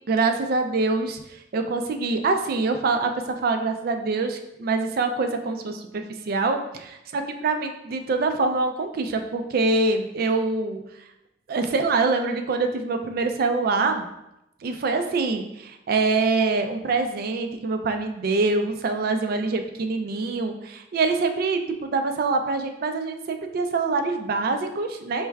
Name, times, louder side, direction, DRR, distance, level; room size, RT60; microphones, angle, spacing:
voice 1, 0.1-5.9 6.3-10.8 11.5-14.1 14.6-25.3, right 3 dB, 50° right, 6 dB, 0.3 m, -25 dB
4.4 x 3.2 x 2.3 m, 0.87 s
head